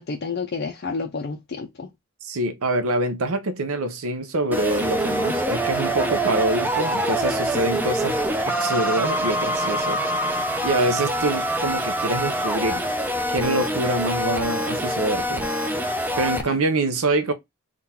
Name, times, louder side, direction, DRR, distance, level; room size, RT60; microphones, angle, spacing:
voice 1, 0.0-1.9 16.5-16.6, left 4 dB, 50° left, 0.5 m, -30 dB
voice 2, 2.2-10.3 10.6-12.8 13.3-17.3, right 2 dB, 75° right, 0.6 m, -25 dB
sound 1, 4.5-16.4, right 1 dB, 10° right, 0.5 m, -25 dB
3.8 x 2.4 x 4.1 m
head